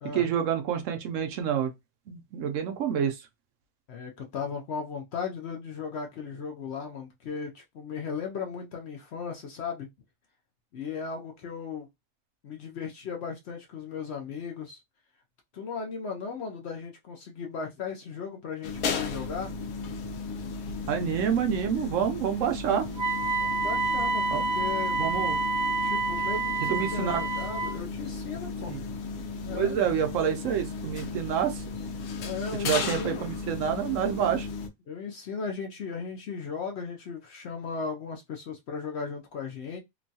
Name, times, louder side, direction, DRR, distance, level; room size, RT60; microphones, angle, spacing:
voice 1, 0.1-1.7 2.1-3.2 20.9-22.9 24.3-24.4 25.0-25.4 26.7-27.2 28.7-28.8 29.5-31.6 32.6-34.5, right 8 dB, 70° right, 0.9 m, -28 dB
voice 2, 3.9-9.9 10.7-11.9 12.4-14.8 15.5-19.5 23.3-25.0 25.8-28.8 29.4-29.8 32.2-33.3 34.9-39.8, left 5 dB, 60° left, 0.8 m, -36 dB
sound 1, 18.6-34.7, left 4 dB, 80° left, 1.1 m, -35 dB
Wind instrument woodwind instrument, 23.0-27.8, right 3 dB, 40° right, 0.8 m, -28 dB
3.0 x 2.2 x 2.6 m
omnidirectional pair, 1.5 m